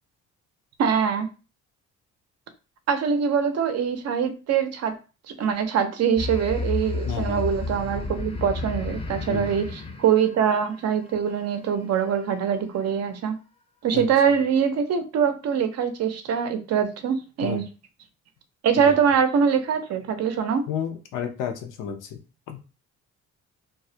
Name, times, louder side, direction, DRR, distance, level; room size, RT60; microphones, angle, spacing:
voice 1, 0.8-1.3 2.9-4.9 5.3-13.4 13.8-17.6 18.6-20.6, right 7 dB, 55° right, 8 dB, 0.5 m, -23 dB
sound 1, 6.2-11.1, left 3 dB, 20° left, 0.4 m, -31 dB
voice 2, 7.0-7.4 9.3-9.5 13.9-14.1 17.4-17.6 18.8-18.9 20.7-22.2 22.5-22.6, left 8 dB, 90° left, 5 dB, 0.5 m, -31 dB
2.3 x 2.0 x 2.6 m, 0.32 s
cardioid pair, 90°, 30 cm